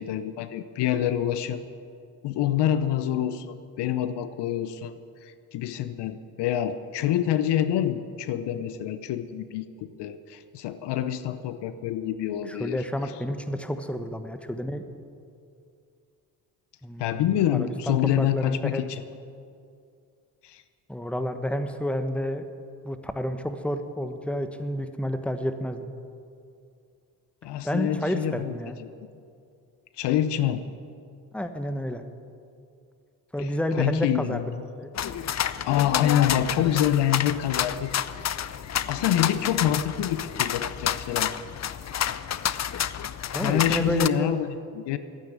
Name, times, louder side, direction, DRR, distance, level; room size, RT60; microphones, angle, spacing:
voice 1, 0.0-1.6 2.2-4.9 5.2-12.8 17.0-19.0 20.4-20.6 27.4-28.5 28.8-28.9 30.0-30.6 33.4-33.5 33.8-34.4 35.6-37.9 38.4-38.5 38.9-41.3 43.4-45.0, left 11 dB, 65° left, 12 dB, 0.9 m, -26 dB
voice 2, 12.5-14.8 16.8-18.9 20.9-22.4 22.8-25.9 27.6-28.8 31.3-32.0 33.3-34.4 34.8-34.9 43.3-44.3, equal, 5° left, 8 dB, 1.3 m, -30 dB
sound 1, 34.9-44.1, left 10 dB, 40° left, 0.6 m, -29 dB
13.0 x 9.1 x 9.8 m, 2.4 s
hypercardioid pair, 55°, 44 cm